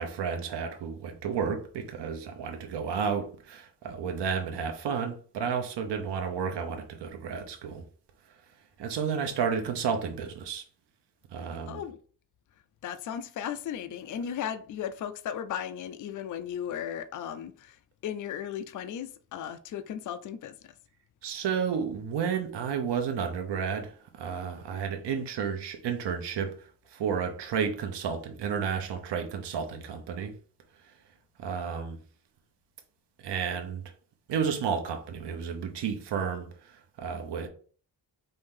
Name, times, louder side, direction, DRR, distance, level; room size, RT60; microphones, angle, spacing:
voice 1, 0.0-7.8 8.8-10.6 11.3-11.8 21.2-26.5 26.9-30.3 31.4-32.0 33.2-33.8 34.3-36.7 37.0-37.5, right 6 dB, 85° right, 0.8 m, -32 dB
voice 2, 11.7-12.0 12.8-20.5, left 9 dB, 50° left, 0.4 m, -36 dB
4.5 x 2.7 x 3.7 m
wide cardioid pair, 120°, 40 cm